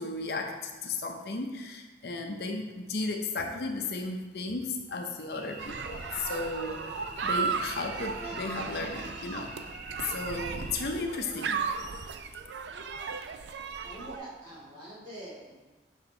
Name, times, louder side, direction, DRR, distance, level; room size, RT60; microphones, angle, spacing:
voice 1, 0.0-9.6 10.0-11.6, left 3 dB, 60° left, 3 dB, 0.6 m, -35 dB
Cricket / Buzz, 5.3-10.8, right 1 dB, 50° right, 2.2 m, -45 dB
sound 1, 5.6-14.2, right 5 dB, 75° right, 0.4 m, -35 dB
voice 2, 13.8-15.5, right 1 dB, 30° right, -8 dB, 2.2 m, -44 dB
6.5 x 5.3 x 3.8 m, 1.3 s
head